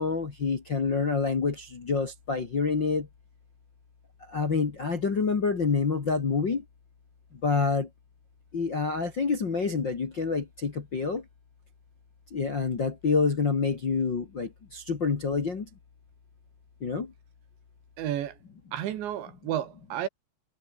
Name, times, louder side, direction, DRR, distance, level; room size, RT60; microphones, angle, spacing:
voice 1, 0.0-3.1 4.2-6.6 7.3-7.9 8.5-11.2 12.3-15.7 16.8-17.1, left 4 dB, 40° left, 1.7 m, -27 dB
voice 2, 18.0-18.4 18.7-20.1, right 11 dB, 75° right, 4.3 m, -32 dB
omnidirectional pair, 5.2 m